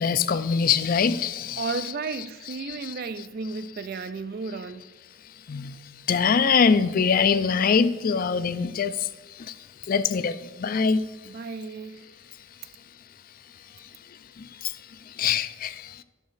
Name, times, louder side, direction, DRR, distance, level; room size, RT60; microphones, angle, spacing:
voice 1, 0.0-1.6 2.7-2.9 5.5-5.7 6.1-9.1 9.9-11.0 14.6-14.7 15.2-16.0, left 6 dB, 45° left, 0.4 m, -23 dB
voice 2, 1.6-4.9 11.2-12.1, right 4 dB, 45° right, 0.4 m, -33 dB
12.0 x 6.8 x 4.0 m
head